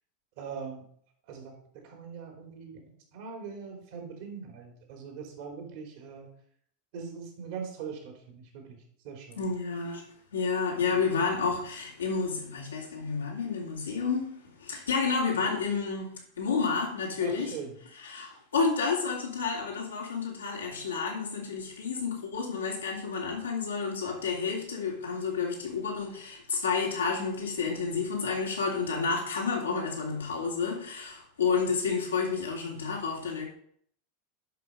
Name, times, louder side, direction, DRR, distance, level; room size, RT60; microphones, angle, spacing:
voice 1, 0.4-0.8 1.3-6.3 6.9-9.4 10.9-11.1 17.2-17.8, right 6 dB, 60° right, 3.5 m, -42 dB
voice 2, 9.4-10.0 10.3-17.5 18.0-33.5, left 5 dB, 80° left, 2.9 m, -30 dB
11.5 x 5.7 x 5.4 m
figure-of-eight pair, 85°, 0 cm